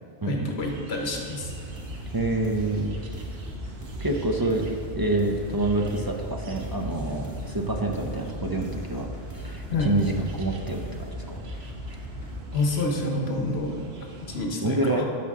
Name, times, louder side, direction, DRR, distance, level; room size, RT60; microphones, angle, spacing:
voice 1, 0.2-1.5 9.7-10.0 12.5-13.8 14.2-15.1, left 2 dB, 80° left, 1 dB, 1.2 m, -28 dB
sound 1, 0.6-14.5, right 3 dB, 75° right, 1.2 m, -41 dB
sound 2, 1.4-12.4, left 1 dB, 15° left, 1.0 m, -38 dB
voice 2, 2.1-2.9 4.0-4.6 5.0-9.1 9.3-11.4 14.6-15.0, right 2 dB, 25° right, 1 dB, 0.5 m, -27 dB
11.5 x 6.0 x 3.6 m, 2.4 s
omnidirectional pair, 1.1 m